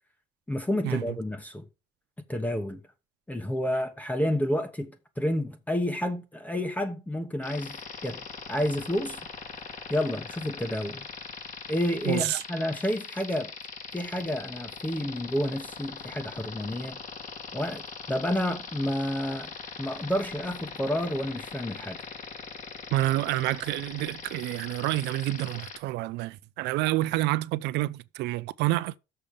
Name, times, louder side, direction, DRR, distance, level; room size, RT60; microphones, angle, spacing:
voice 1, 0.5-1.6 2.3-2.8 3.3-8.2 8.5-9.2 9.9-11.1 11.7-13.5 13.9-17.0 17.5-19.5 19.8-22.0, left 1 dB, 10° left, 1.1 m, -30 dB
sound 1, 7.4-25.8, left 5 dB, 45° left, 1.9 m, -41 dB
voice 2, 12.1-12.4 22.9-29.0, right 17 dB, 85° right, 0.5 m, -28 dB
6.7 x 5.3 x 6.9 m
cardioid pair, 110°, 17 cm